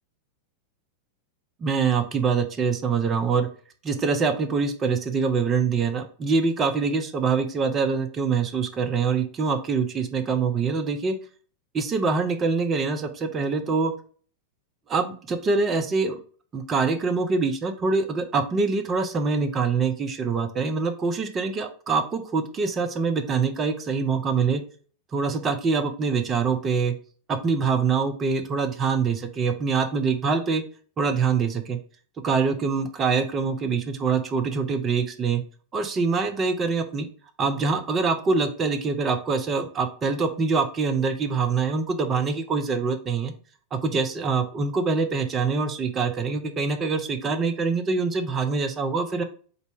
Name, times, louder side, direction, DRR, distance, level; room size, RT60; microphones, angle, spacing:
voice 1, 1.6-3.5 3.8-11.2 11.7-13.9 14.9-16.2 16.5-24.6 25.1-26.9 27.3-30.6 31.0-31.8 32.2-35.4 35.7-37.1 37.4-43.3 43.7-49.2, right 5 dB, 25° right, 7 dB, 0.5 m, -24 dB
4.0 x 2.1 x 4.4 m, 0.42 s
figure-of-eight pair, 90°, 0 cm